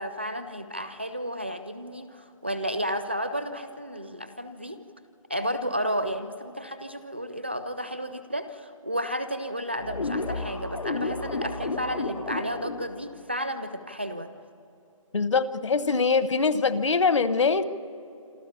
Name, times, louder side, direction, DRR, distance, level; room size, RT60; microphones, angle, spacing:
voice 1, 0.0-4.8 5.3-14.3, equal, 20° right, 11 dB, 0.4 m, -32 dB
sound 1, 9.8-12.9, left 2 dB, 80° left, 4.5 m, -31 dB
voice 2, 15.1-17.6, left 4 dB, 60° left, 14 dB, 1.0 m, -23 dB
27.5 x 12.5 x 8.5 m, 2.7 s
hypercardioid pair, 175°, 17 cm